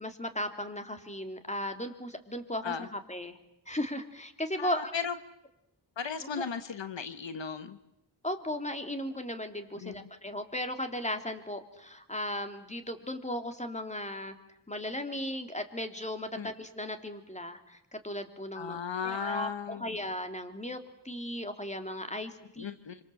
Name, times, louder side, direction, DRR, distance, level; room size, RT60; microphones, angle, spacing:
voice 1, 0.0-3.4 3.7-4.9 6.4-6.5 8.2-14.3 14.7-20.8 21.0-22.7, left 1 dB, 15° left, 7 dB, 3.1 m, -36 dB
voice 2, 4.6-5.1 6.0-7.8 9.8-10.0 16.4-16.5 18.5-20.0 22.6-23.0, left 6 dB, 85° left, 11 dB, 1.3 m, -36 dB
27.0 x 26.0 x 7.8 m, 0.81 s
wide cardioid pair, 60°, 43 cm